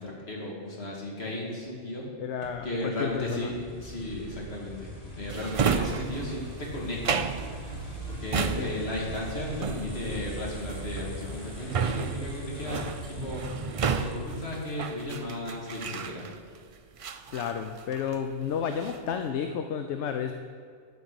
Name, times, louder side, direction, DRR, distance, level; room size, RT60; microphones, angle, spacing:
voice 1, 0.0-2.0 2.6-3.5 3.8-7.2 8.1-13.4 13.9-16.3, left 1 dB, 60° left, -3 dB, 2.6 m, -35 dB
voice 2, 2.2-3.5 8.6-8.8 17.3-20.3, left 7 dB, 75° left, 7 dB, 0.9 m, -31 dB
sound 1, 2.4-15.1, equal, 25° left, 2.1 m, -40 dB
Drawer open or close, 5.3-16.6 17.0-18.3 18.6-19.1, right 6 dB, 65° right, 0.3 m, -32 dB
11.5 x 5.4 x 7.9 m, 2.1 s
omnidirectional pair, 1.2 m